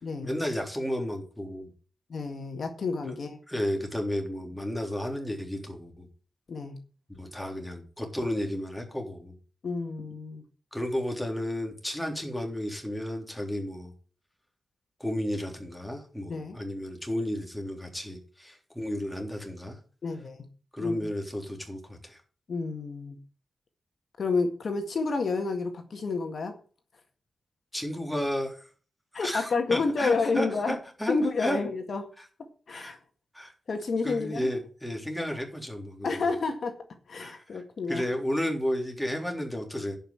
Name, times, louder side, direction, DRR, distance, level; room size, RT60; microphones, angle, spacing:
voice 1, 0.2-1.7 3.5-6.1 7.1-9.3 10.7-13.9 15.0-19.8 20.7-22.2 27.7-28.7 29.1-31.6 32.7-32.9 33.3-33.5 34.0-36.1 37.2-37.6 37.9-40.0, equal, 5° left, 2 dB, 3.5 m, -33 dB
voice 2, 2.1-3.4 6.5-6.8 9.6-10.4 16.3-16.6 20.0-20.4 20.8-21.1 22.5-23.2 24.2-26.6 29.1-30.8 31.1-32.1 32.7-33.0 33.7-34.4 36.0-36.8 37.1-38.0, left 4 dB, 65° left, 5 dB, 1.8 m, -29 dB
11.0 x 5.6 x 8.7 m, 0.39 s
wide cardioid pair, 90°, 0 cm